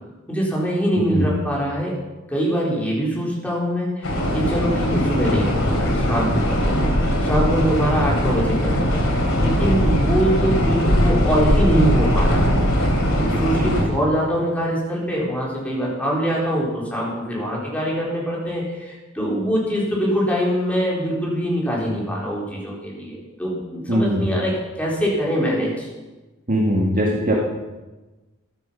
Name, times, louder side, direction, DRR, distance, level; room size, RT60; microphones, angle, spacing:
voice 1, 0.3-1.9 2.3-25.9, equal, 5° left, -5 dB, 4.1 m, -23 dB
voice 2, 0.9-1.3 13.6-13.8 23.9-24.3 26.5-27.4, equal, 40° right, -2 dB, 2.1 m, -20 dB
sound 1, 4.0-13.8, equal, 75° left, 3.7 m, -20 dB
14.5 x 12.0 x 5.8 m, 1.2 s
head